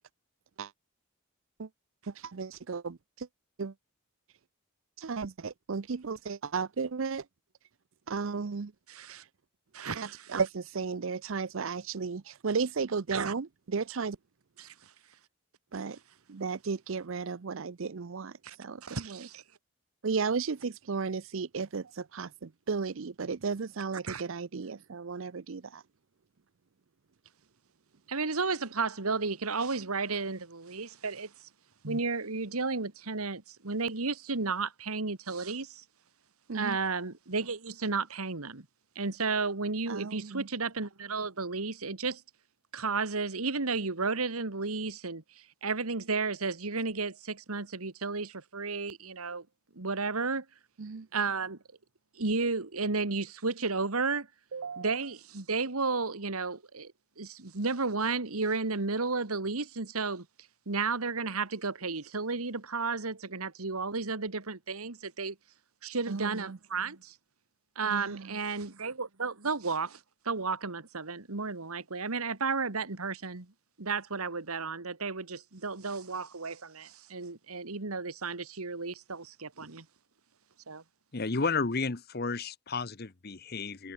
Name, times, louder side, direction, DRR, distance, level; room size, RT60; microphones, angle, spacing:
voice 1, 2.1-3.3 3.6-3.7 5.0-7.3 8.1-8.7 9.1-9.2 10.0-14.2 15.7-16.0 16.3-19.3 20.0-25.8 36.5-36.8 39.9-40.5 50.8-51.1 54.5-55.0 66.1-66.6 67.8-68.4, right 5 dB, 65° right, 0.6 m, -34 dB
voice 2, 8.9-9.2 9.7-10.4 13.1-13.3 14.6-14.9 18.4-18.6 18.8-19.4 24.1-24.2 28.1-31.3 31.8-35.8 36.5-38.7 39.0-42.2 42.7-45.2 45.6-49.5 49.7-50.5 51.1-51.6 52.2-54.3 54.8-60.3 60.7-65.4 65.8-67.1 67.8-70.0 70.3-73.5 73.8-79.9 80.7-80.8, right 4 dB, 85° right, 1.8 m, -33 dB
voice 3, 81.1-83.9, left 4 dB, 45° left, 1.0 m, -32 dB
head